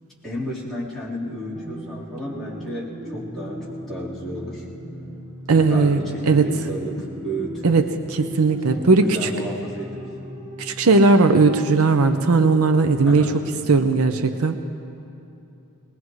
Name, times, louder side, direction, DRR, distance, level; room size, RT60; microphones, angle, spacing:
voice 1, 0.2-4.6 5.5-7.8 8.7-10.1 13.0-13.4, equal, ahead, -11 dB, 4.0 m, -32 dB
sound 1, 1.5-13.5, equal, 15° right, 1.0 m, -37 dB
voice 2, 5.5-6.5 7.6-9.3 10.6-13.3 13.7-14.6, right 3 dB, 75° right, 8 dB, 0.7 m, -18 dB
21.0 x 20.5 x 3.2 m, 2.8 s
head